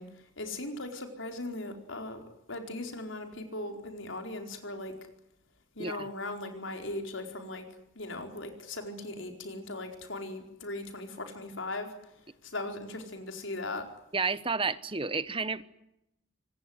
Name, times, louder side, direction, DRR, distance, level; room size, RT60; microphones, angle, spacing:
voice 1, 0.0-2.2 2.5-4.9 5.7-7.7 7.9-13.9, left 2 dB, 65° left, 4 dB, 4.5 m, -39 dB
voice 2, 14.1-15.6, right 4 dB, 25° right, 14 dB, 1.0 m, -31 dB
26.0 x 18.5 x 9.6 m, 0.86 s
head